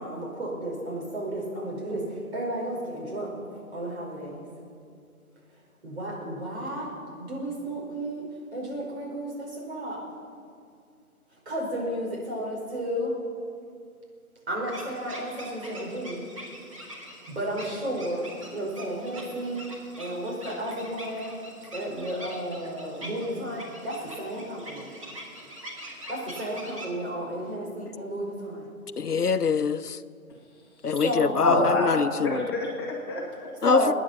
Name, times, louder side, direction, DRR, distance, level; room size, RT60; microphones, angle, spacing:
voice 1, 0.0-3.3 3.7-4.4 5.8-6.9 7.2-8.3 8.5-10.0 11.5-13.2 14.5-16.2 17.4-19.6 20.0-21.4 21.7-24.9 26.1-28.7 31.0-31.4 33.6-33.9, right 1 dB, 45° right, 5.0 m, -32 dB
sound 1, 14.7-26.9, equal, 20° right, 2.4 m, -44 dB
voice 2, 29.0-30.0 30.8-32.4 33.6-33.9, left 6 dB, 90° left, 0.8 m, -24 dB
voice 3, 31.4-33.5, left 1 dB, 15° left, 1.7 m, -27 dB
24.0 x 10.0 x 6.0 m
figure-of-eight pair, 160°, 45 cm